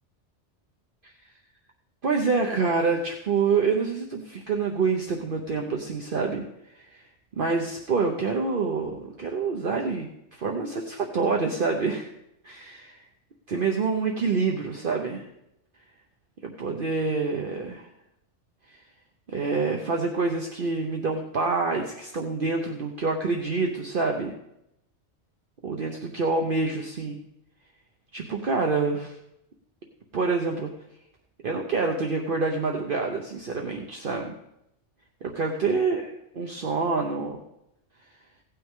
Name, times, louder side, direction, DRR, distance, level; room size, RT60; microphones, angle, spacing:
voice 1, 2.0-6.4 6.7-7.1 7.4-12.1 12.4-13.0 13.5-15.3 16.4-17.9 18.7-18.8 19.3-24.3 25.6-27.2 28.1-29.2 30.1-30.7 31.4-34.3 35.2-36.1 36.3-37.4, right 4 dB, 50° right, 2 dB, 1.0 m, -27 dB
16.0 x 8.9 x 3.7 m, 0.82 s
omnidirectional pair, 1.2 m